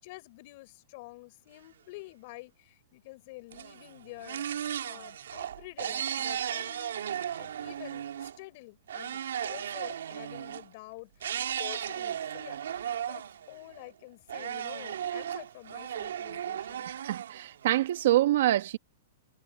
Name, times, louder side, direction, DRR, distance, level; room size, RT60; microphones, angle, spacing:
voice 1, 0.0-4.4 4.8-11.3 11.6-12.6 13.1-16.9, left 22 dB, 40° left, 5.0 m, -48 dB
sound 1, 3.5-8.4 8.9-10.7 11.2-13.9 14.3-18.0, right 9 dB, 85° right, 2.3 m, -36 dB
voice 2, 16.9-18.8, right 14 dB, 60° right, 1.5 m, -26 dB
hypercardioid pair, 160°, 0 cm